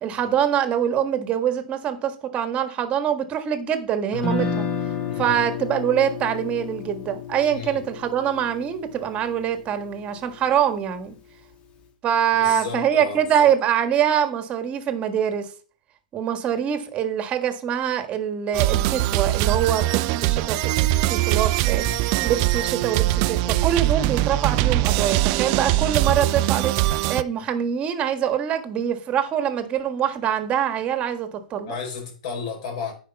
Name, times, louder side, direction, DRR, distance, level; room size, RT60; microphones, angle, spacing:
voice 1, 0.0-4.6 5.2-11.1 12.0-15.5 16.1-26.7 27.1-31.7, right 9 dB, 25° right, 1.5 m, -24 dB
Guitar, 4.1-10.2, left 5 dB, 25° left, 2.0 m, -31 dB
voice 2, 5.1-5.4 7.5-7.8 12.3-13.5 21.8-22.1 31.7-32.9, left 5 dB, 50° left, 4.0 m, -34 dB
sound 1, 18.5-27.2, right 16 dB, 40° right, 0.4 m, -22 dB
9.2 x 4.9 x 5.8 m
hypercardioid pair, 125°, 4 cm